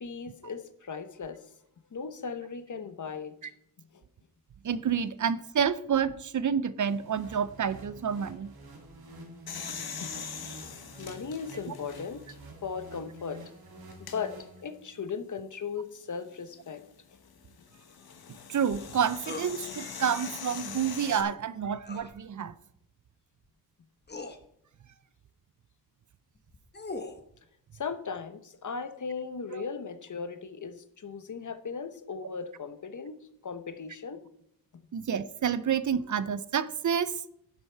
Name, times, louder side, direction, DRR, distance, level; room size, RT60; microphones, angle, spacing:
voice 1, 0.0-1.5 1.9-3.3 3.9-4.0 9.1-10.5 11.0-13.4 14.0-14.3 14.6-16.8 17.1-17.2 27.7-33.1 33.4-34.2 34.7-34.8, left 5 dB, 55° left, 1.0 m, -38 dB
voice 2, 4.6-8.5 18.5-22.6 29.5-29.7 34.9-37.1, right 7 dB, 55° right, 0.5 m, -29 dB
sound 1, 6.9-15.0, right 2 dB, 85° right, 2.6 m, -49 dB
sound 2, 9.5-12.4 12.9-13.0 13.9-14.2 16.3-21.2, left 6 dB, 85° left, 1.3 m, -42 dB
sound 3, 19.3-19.5 21.8-22.1 23.4-23.5 24.1-24.4 26.4-27.2, left 3 dB, 30° left, 1.1 m, -39 dB
11.0 x 8.1 x 4.5 m
wide cardioid pair, 95°, 36 cm